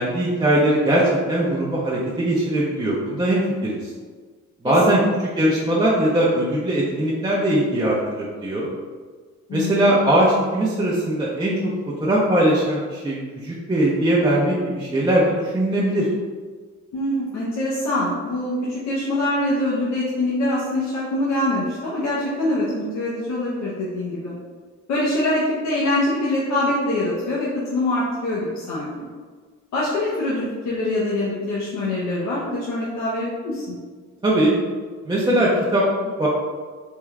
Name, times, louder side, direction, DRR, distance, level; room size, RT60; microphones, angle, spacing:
voice 1, 0.0-3.9 4.6-8.7 9.5-16.1 34.2-34.5 35.0-35.8 36.2-36.3, right 1 dB, 15° right, -6 dB, 0.6 m, -20 dB
voice 2, 4.6-5.0 9.5-9.9 16.9-24.4 24.9-29.1 29.7-33.8, left 1 dB, 65° left, -7 dB, 0.8 m, -24 dB
3.6 x 2.3 x 3.2 m, 1.5 s
cardioid pair, 90°, 30 cm